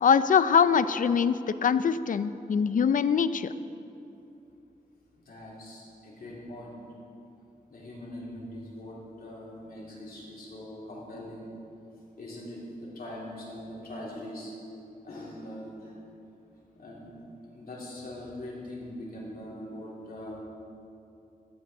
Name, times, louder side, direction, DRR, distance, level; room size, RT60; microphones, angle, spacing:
voice 1, 0.0-3.5, left 6 dB, 60° left, 13 dB, 0.4 m, -23 dB
voice 2, 5.3-6.8 7.7-11.5 12.2-12.6 12.9-14.5 15.0-15.9 16.8-17.1 17.5-20.4, left 1 dB, 80° left, -5 dB, 3.3 m, -42 dB
15.5 x 12.5 x 3.9 m, 2.7 s
wide cardioid pair, 150°, 15 cm